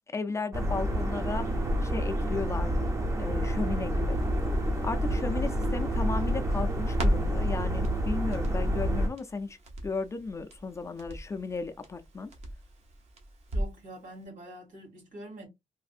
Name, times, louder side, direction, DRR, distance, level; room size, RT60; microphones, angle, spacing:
voice 1, 0.1-1.4 1.8-2.9 3.2-4.2 4.8-9.6 9.8-12.3, left 4 dB, 20° left, 0.3 m, -35 dB
sound 1, 0.5-9.1, equal, 20° right, 0.6 m, -28 dB
Crackle, 4.1-13.9 14.2-14.3, right 1 dB, 55° right, 1.0 m, -38 dB
voice 2, 13.5-15.5, right 1 dB, 90° right, 2.1 m, -45 dB
3.4 x 2.5 x 2.4 m
wide cardioid pair, 160°, 13 cm